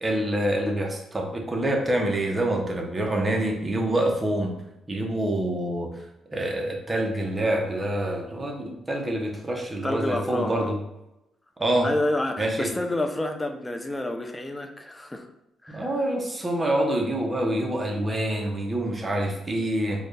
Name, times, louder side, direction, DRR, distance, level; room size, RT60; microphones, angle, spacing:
voice 1, 0.0-4.5 4.9-5.9 6.3-10.8 11.6-11.9 12.4-12.7 15.7-20.1, right 1 dB, 20° right, 1 dB, 0.8 m, -26 dB
voice 2, 9.8-10.7 11.8-15.3 15.6-15.9, left 1 dB, 15° left, 5 dB, 0.5 m, -29 dB
4.2 x 2.4 x 3.3 m, 0.90 s
cardioid pair, 90°, 0 cm